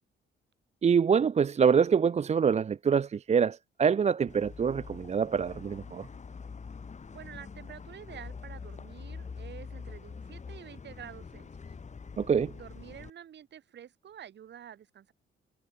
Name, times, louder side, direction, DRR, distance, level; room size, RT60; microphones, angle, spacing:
voice 1, 0.8-6.1 12.2-12.5, right 6 dB, 35° right, 0.6 m, -25 dB
sound 1, 4.3-13.1, left 5 dB, 35° left, 6.9 m, -45 dB
voice 2, 7.1-11.5 12.5-15.1, right 9 dB, 60° right, 3.2 m, -48 dB
cardioid pair, 90°, 20 cm